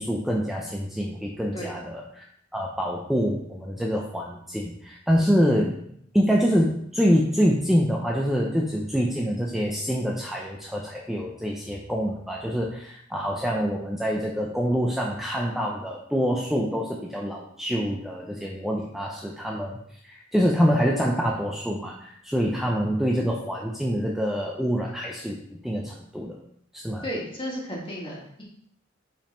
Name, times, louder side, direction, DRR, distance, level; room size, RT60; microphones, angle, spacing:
voice 1, 0.0-2.2 2.5-5.8 6.1-19.8 20.0-25.4 25.6-26.4 26.7-27.0, equal, ahead, -2 dB, 0.6 m, -26 dB
voice 2, 27.0-28.4, equal, 25° left, -4 dB, 2.1 m, -34 dB
5.2 x 5.2 x 4.4 m, 0.68 s
head